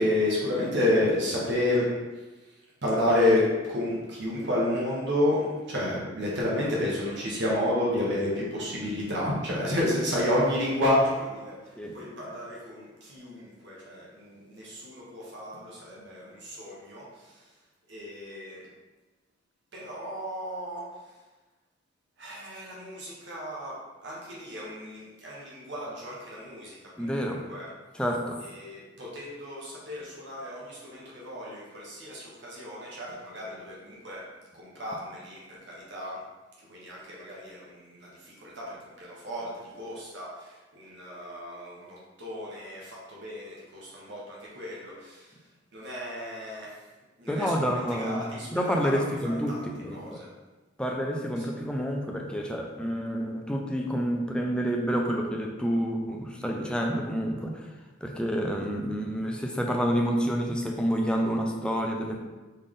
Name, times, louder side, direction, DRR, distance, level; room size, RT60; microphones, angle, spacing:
voice 1, 0.0-1.9 2.8-5.4 5.7-11.6 11.9-17.0 17.9-18.6 19.7-20.9 22.2-27.7 28.4-34.2 34.5-36.2 36.7-45.2 45.7-46.7 47.2-49.0 49.5-49.6 49.9-50.3, left 1 dB, 65° right, -5 dB, 1.1 m, -31 dB
voice 2, 27.0-27.4 27.9-28.4 47.3-50.2 50.8-57.7 58.0-62.2, equal, 5° left, 0 dB, 0.5 m, -29 dB
4.1 x 3.3 x 3.7 m, 1.2 s
head